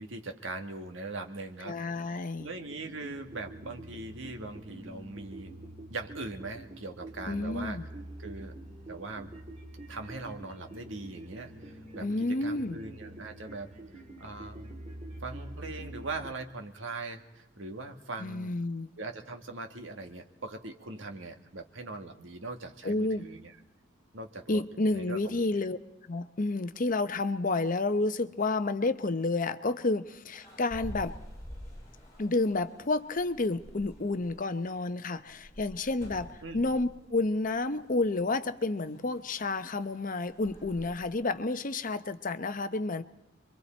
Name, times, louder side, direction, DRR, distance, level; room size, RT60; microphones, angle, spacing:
voice 1, 0.0-5.5 5.9-7.8 8.2-8.6 8.9-9.3 9.9-13.7 14.2-14.7 15.2-18.5 19.0-23.5 24.1-24.6 24.9-25.4 36.4-36.6, right 3 dB, 80° right, 5 dB, 1.8 m, -41 dB
voice 2, 1.7-2.5 7.3-7.8 12.0-12.9 18.2-18.9 22.8-23.3 24.5-25.8 26.1-31.2 32.2-43.0, left 2 dB, 45° left, 11 dB, 0.8 m, -30 dB
sound 1, 2.4-16.3, right 1 dB, 35° right, 2.6 m, -46 dB
sound 2, 30.3-41.1, equal, 15° left, 7.7 m, -49 dB
26.0 x 23.5 x 4.4 m, 0.93 s
head